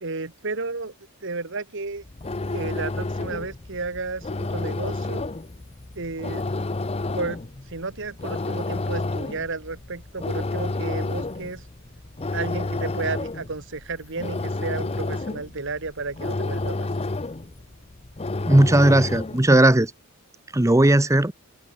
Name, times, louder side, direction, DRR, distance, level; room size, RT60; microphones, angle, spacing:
voice 1, 0.0-0.9 1.2-2.0 2.5-5.3 6.0-6.4 7.2-11.6 12.3-16.9, right 3 dB, 60° right, 1.7 m, -32 dB
sound 1, 2.0-19.6, left 2 dB, 30° left, 0.7 m, -30 dB
voice 2, 18.5-19.9 20.5-21.3, right 1 dB, 15° right, 0.7 m, -17 dB
head